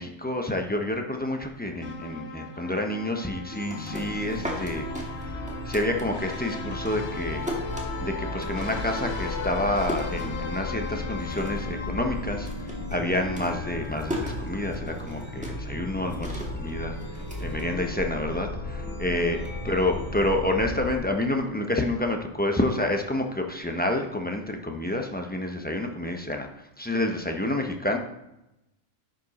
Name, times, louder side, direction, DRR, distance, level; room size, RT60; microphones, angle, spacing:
voice 1, 0.0-4.9 5.7-7.5 8.0-17.0 17.4-19.4 19.6-26.5 26.8-28.0, left 1 dB, 10° left, 3 dB, 0.6 m, -28 dB
sound 1, 1.8-13.1, left 4 dB, 65° left, 1.1 m, -38 dB
Chime, 3.5-21.0, left 1 dB, 90° left, 2.0 m, -35 dB
sound 2, 3.5-6.4 6.7-10.9 11.2-11.8 12.0-18.3, equal, 5° right, 1.5 m, -38 dB
10.5 x 5.2 x 4.2 m, 0.91 s
omnidirectional pair, 1.3 m